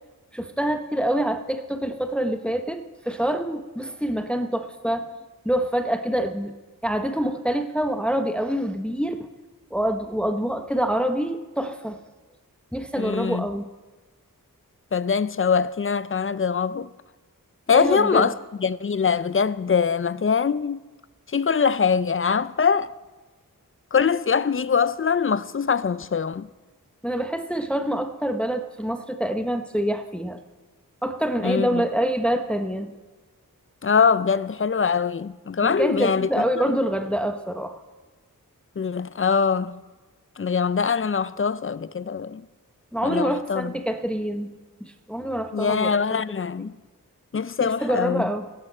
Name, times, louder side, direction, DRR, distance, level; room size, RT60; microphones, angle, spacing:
voice 1, 0.3-5.1 5.4-6.5 6.8-9.3 9.7-12.0 12.7-13.6 17.7-18.3 27.0-30.4 31.0-32.9 35.6-37.8 42.9-44.5 44.8-46.2 46.6-46.7 47.6-48.5, right 1 dB, 5° left, 0.9 m, -26 dB
voice 2, 13.0-13.5 14.9-16.9 17.7-18.3 18.6-20.8 21.3-22.9 23.9-26.5 31.4-31.8 33.8-36.3 36.6-36.8 38.8-39.8 40.4-42.4 43.0-43.7 45.5-46.7 47.3-48.2, left 6 dB, 40° left, 0.5 m, -23 dB
15.5 x 12.5 x 4.4 m
cardioid pair, 45°, 34 cm